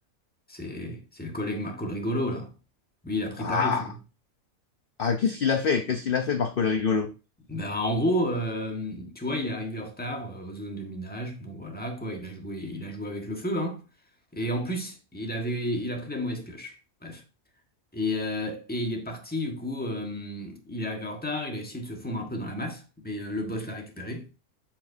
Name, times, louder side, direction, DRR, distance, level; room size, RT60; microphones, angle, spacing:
voice 1, 0.5-2.5 3.0-4.0 7.5-13.8 14.3-17.2 17.9-24.3, equal, 5° left, 1.3 m, -32 dB
voice 2, 3.4-3.8 5.0-7.1, left 6 dB, 50° left, 0.7 m, -25 dB
7.6 x 7.3 x 2.6 m
omnidirectional pair, 1.5 m